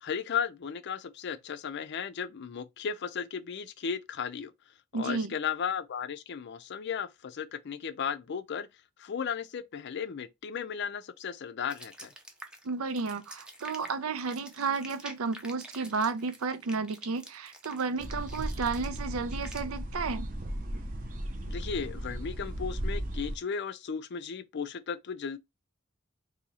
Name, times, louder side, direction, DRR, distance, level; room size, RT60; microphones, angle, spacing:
voice 1, 0.0-4.5 4.9-8.7 9.0-12.1 21.5-25.4, left 7 dB, 55° left, 0.4 m, -35 dB
voice 2, 4.9-5.3 12.6-20.3, right 4 dB, 90° right, 0.5 m, -32 dB
sound 1, 11.7-19.6, right 1 dB, 5° right, 0.5 m, -48 dB
sound 2, 18.0-23.4, equal, 40° right, 0.7 m, -36 dB
2.8 x 2.7 x 4.0 m
head